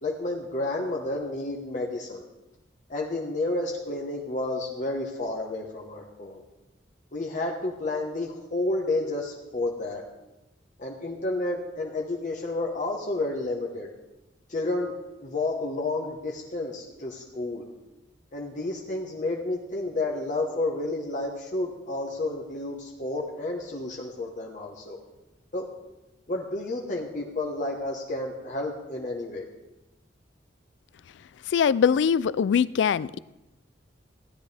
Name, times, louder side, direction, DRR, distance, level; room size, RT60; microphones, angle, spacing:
voice 1, 0.0-2.2 2.9-6.4 7.1-10.0 10.8-13.9 14.5-17.6 18.3-25.0 25.5-25.7 26.3-29.5, left 2 dB, 45° left, -1 dB, 1.2 m, -31 dB
voice 2, 31.5-33.2, left 7 dB, 70° left, 20 dB, 0.3 m, -22 dB
16.0 x 10.5 x 3.4 m, 0.99 s
head